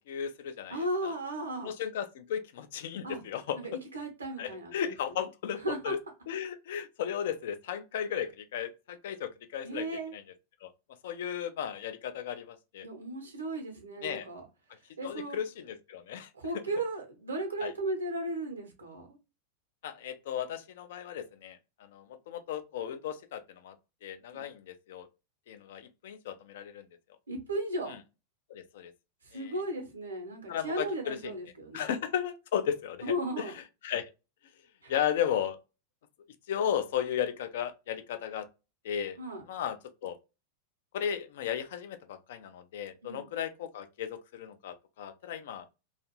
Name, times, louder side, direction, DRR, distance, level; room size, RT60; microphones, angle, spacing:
voice 1, 0.1-1.1 1.6-3.6 4.4-6.0 6.3-9.9 10.1-10.2 10.6-10.7 11.0-12.9 14.0-14.3 15.0-16.3 17.6-17.7 19.8-23.8 24.0-25.1 25.5-26.8 28.5-28.9 29.3-29.5 30.5-31.4 31.7-33.4 33.8-34.1 34.9-35.6 36.5-38.5 38.8-39.2 39.5-40.2 40.9-45.7, left 9 dB, 55° left, 0.3 m, -35 dB
voice 2, 0.7-1.7 3.0-3.2 3.6-5.2 5.6-5.9 9.6-10.1 12.8-14.5 15.0-15.4 16.3-19.1 24.3-24.5 27.3-28.0 29.2-31.9 33.0-33.5 34.8-34.9 39.2-39.4 43.0-43.3, right 1 dB, 75° right, 0.8 m, -35 dB
2.5 x 2.4 x 2.9 m
figure-of-eight pair, 90°, 0 cm